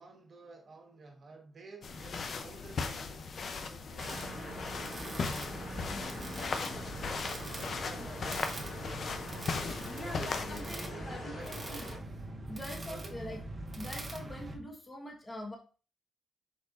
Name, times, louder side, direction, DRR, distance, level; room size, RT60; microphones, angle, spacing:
voice 1, 0.0-5.4 6.6-9.4 10.0-11.9 12.8-13.2, right 3 dB, 50° right, 1.2 m, -52 dB
sound 1, 1.8-10.6, left 5 dB, 55° left, 0.6 m, -38 dB
sound 2, 4.0-12.0, left 2 dB, 80° left, 2.6 m, -45 dB
sound 3, 4.0-14.6, right 2 dB, 30° right, 1.0 m, -43 dB
voice 2, 5.9-6.6 9.8-11.9 12.5-13.4 13.7-15.6, left 1 dB, 20° left, 1.4 m, -44 dB
4.5 x 4.4 x 2.5 m
cardioid pair, 80°, 0 cm